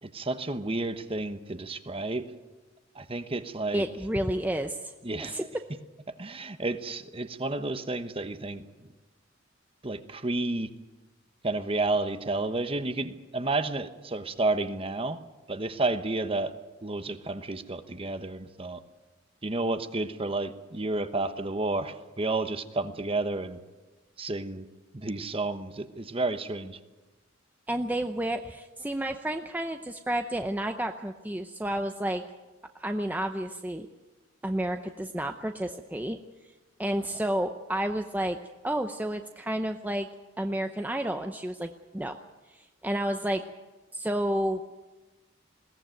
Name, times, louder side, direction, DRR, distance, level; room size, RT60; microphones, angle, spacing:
voice 1, 0.0-2.3 2.9-3.8 5.0-5.5 6.1-8.6 9.8-10.7 11.4-15.2 15.5-16.5 16.8-18.8 19.4-23.6 24.2-24.7 24.9-26.8, right 2 dB, 30° right, 10 dB, 1.1 m, -31 dB
voice 2, 3.7-5.4 27.7-32.2 32.8-33.9 34.4-36.2 36.8-38.4 38.6-40.1 40.4-42.2 42.5-43.4 43.9-44.6, right 1 dB, 10° right, 6 dB, 0.7 m, -31 dB
21.0 x 17.0 x 9.1 m, 1.2 s
head